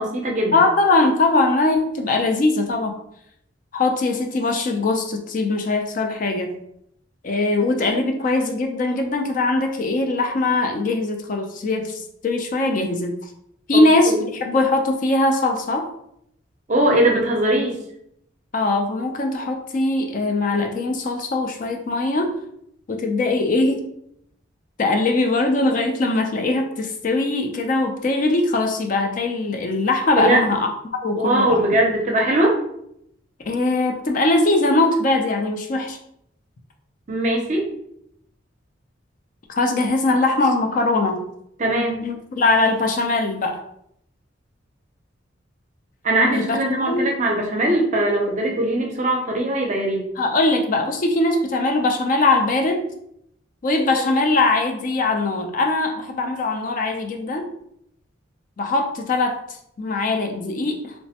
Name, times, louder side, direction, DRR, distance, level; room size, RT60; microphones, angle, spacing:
voice 1, 0.0-0.6 13.7-13.8 14.1-14.2 16.7-17.8 30.2-30.5 31.2-32.6 37.1-37.7 41.6-42.0 46.0-50.1, right 1 dB, 40° right, 0 dB, 0.5 m, -20 dB
voice 2, 0.5-2.9 3.7-6.5 7.2-13.3 13.7-15.8 18.5-22.4 22.9-23.9 24.8-30.7 31.0-31.6 33.5-36.0 39.5-41.2 42.0-43.6 46.3-46.6 46.9-47.1 50.2-52.8 53.6-57.5 58.6-59.4 59.8-60.9, left 2 dB, 40° left, 3 dB, 0.4 m, -21 dB
3.1 x 2.1 x 2.8 m, 0.74 s
head